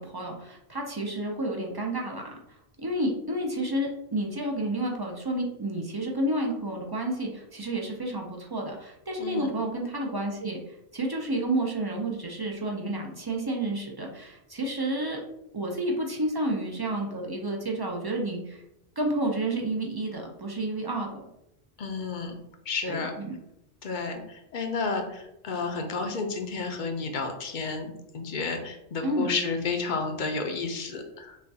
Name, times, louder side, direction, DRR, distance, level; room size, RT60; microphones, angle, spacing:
voice 1, 0.0-2.2 2.8-10.6 10.9-15.2 15.5-18.6 19.0-21.2 22.8-23.4 29.0-29.3, right 1 dB, 40° right, 1 dB, 0.3 m, -30 dB
voice 2, 9.2-9.5 21.8-22.4 22.7-23.1 23.8-31.4, left 4 dB, 55° left, 5 dB, 0.7 m, -31 dB
6.2 x 2.3 x 2.7 m, 0.84 s
omnidirectional pair, 1.1 m